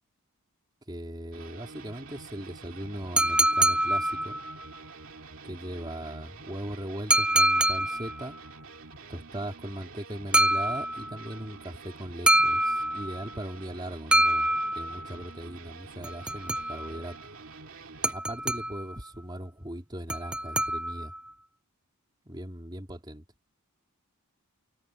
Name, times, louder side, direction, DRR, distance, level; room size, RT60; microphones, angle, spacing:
voice 1, 0.9-4.4 5.4-8.4 9.1-14.5 14.8-17.2 18.1-21.1 22.3-23.2, right 1 dB, 20° right, 3.5 m, -39 dB
sound 1, 1.3-18.1, right 4 dB, 65° right, 3.0 m, -47 dB
sound 2, 3.2-4.6 7.1-8.3 10.3-11.2 12.3-13.3 14.1-15.1 16.0-17.0 18.0-19.0 20.1-21.2, right 1 dB, 5° right, 0.3 m, -25 dB
head